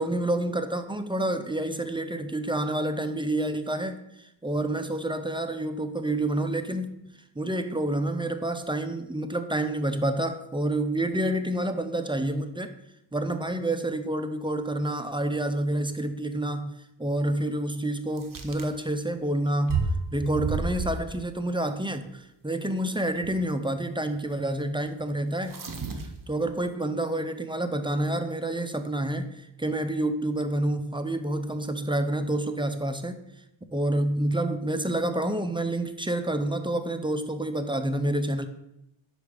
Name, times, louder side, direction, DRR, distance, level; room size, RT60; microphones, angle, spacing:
voice 1, 0.0-6.9 7.4-12.7 13.1-16.7 17.0-25.6 26.3-33.2 33.7-38.5, right 1 dB, 10° right, 8 dB, 0.3 m, -28 dB
sound 1, 18.2-18.7 19.7-21.3 23.2-23.4 25.4-26.3, right 4 dB, 40° right, 0.8 m, -31 dB
4.9 x 4.5 x 5.0 m, 0.85 s
wide cardioid pair, 80°, 49 cm